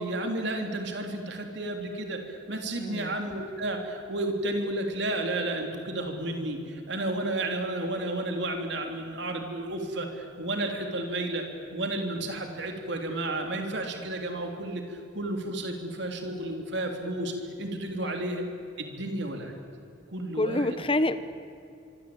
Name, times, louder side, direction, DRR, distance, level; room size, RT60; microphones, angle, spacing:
voice 1, 0.0-18.5 18.8-19.5 20.1-20.8, right 1 dB, 60° right, 3 dB, 3.5 m, -32 dB
voice 2, 2.8-3.2 18.0-18.2 20.3-21.2, left 1 dB, 25° left, 13 dB, 0.9 m, -27 dB
25.0 x 25.0 x 8.8 m, 2.6 s
head